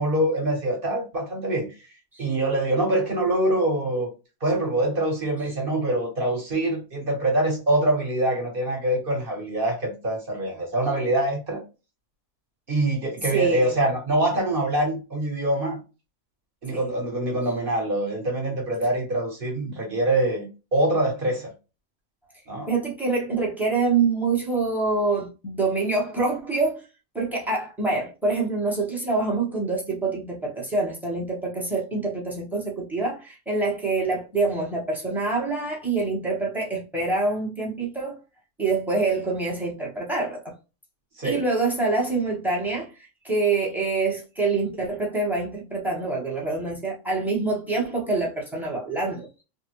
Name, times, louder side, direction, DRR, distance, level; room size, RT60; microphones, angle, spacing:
voice 1, 0.0-1.7 2.2-4.1 4.4-11.6 12.7-15.8 16.6-21.5 22.5-22.7 41.2-41.4, right 1 dB, 40° right, 1.2 m, -24 dB
voice 2, 13.3-13.8 16.7-16.9 22.7-26.8 27.1-38.2 38.6-40.5 41.2-49.3, right 3 dB, ahead, 0.8 m, -26 dB
3.4 x 2.1 x 3.0 m
omnidirectional pair, 1.5 m